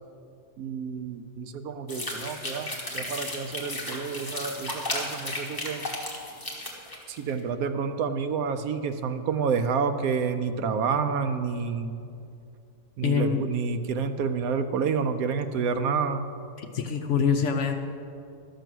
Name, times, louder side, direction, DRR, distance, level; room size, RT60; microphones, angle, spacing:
voice 1, 0.6-5.9 7.1-12.0 13.0-16.3, right 5 dB, 75° right, 9 dB, 1.0 m, -29 dB
sound 1, 1.9-7.3, left 1 dB, 15° left, 1.5 m, -34 dB
voice 2, 13.0-13.4 16.6-17.7, left 6 dB, 65° left, 5 dB, 0.8 m, -25 dB
12.5 x 6.8 x 6.1 m, 2.5 s
omnidirectional pair, 1.6 m